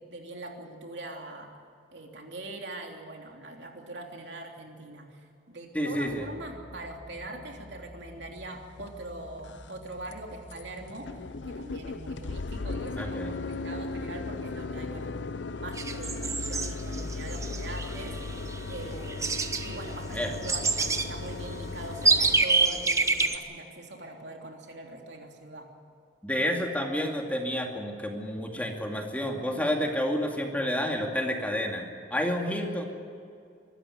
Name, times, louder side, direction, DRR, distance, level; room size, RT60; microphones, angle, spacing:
voice 1, 0.1-1.5 1.9-11.1 11.5-15.1 15.5-18.1 18.7-19.4 19.6-25.7, right 2 dB, 65° right, 2 dB, 3.2 m, -42 dB
voice 2, 5.7-6.3 13.0-13.4 20.1-20.3 26.2-32.9, equal, 10° left, 1 dB, 2.4 m, -30 dB
sound 1, 6.1-18.1, left 1 dB, 45° left, 4.0 m, -49 dB
sound 2, 8.8-8.9 9.4-9.8 10.1-10.2 10.5-10.6 10.9-22.4, left 3 dB, 75° left, 0.7 m, -37 dB
sound 3, 15.8-23.4, right 3 dB, 15° right, 1.1 m, -28 dB
24.5 x 13.5 x 9.7 m, 2.3 s
head